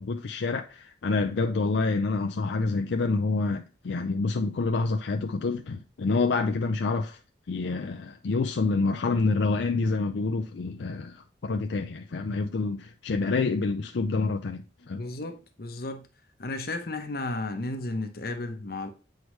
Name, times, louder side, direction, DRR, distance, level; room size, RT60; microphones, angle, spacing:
voice 1, 0.0-7.2 7.5-15.0, left 3 dB, 80° left, 0.5 m, -27 dB
voice 2, 14.9-16.1 16.4-18.9, left 2 dB, 55° left, 0.8 m, -33 dB
8.0 x 4.7 x 3.1 m
head